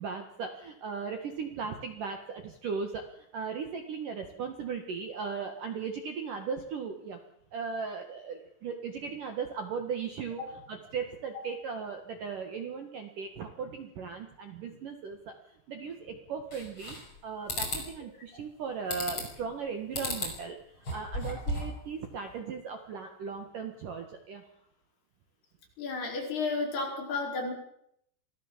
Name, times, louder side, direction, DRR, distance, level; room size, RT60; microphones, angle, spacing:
voice 1, 0.0-7.2 7.5-24.4, right 5 dB, 55° right, 5 dB, 2.5 m, -37 dB
sound 1, 16.5-17.2 17.5-17.8 18.9-19.4 19.9-20.4 20.7-21.8, left 1 dB, 25° left, 6.2 m, -34 dB
voice 2, 25.8-27.5, left 3 dB, 50° left, 1 dB, 6.4 m, -32 dB
26.0 x 17.0 x 7.5 m, 0.73 s
omnidirectional pair, 5.9 m